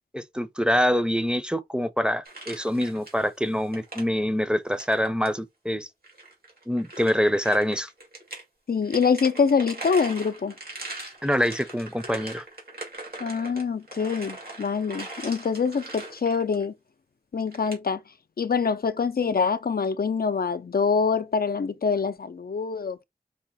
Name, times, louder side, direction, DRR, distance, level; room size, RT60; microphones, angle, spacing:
voice 1, 0.1-5.9 6.7-7.9 11.2-12.4, equal, 5° right, 0.5 m, -25 dB
sound 1, 2.2-3.3 3.6-4.0 4.7-5.3 6.0-8.4 8.8-16.6 17.5-17.7, right 2 dB, 85° right, 1.8 m, -40 dB
voice 2, 8.7-10.5 13.2-16.7 17.3-18.0 18.4-23.0, left 5 dB, 80° left, 0.4 m, -25 dB
4.8 x 2.2 x 4.0 m
wide cardioid pair, 40°, 15 cm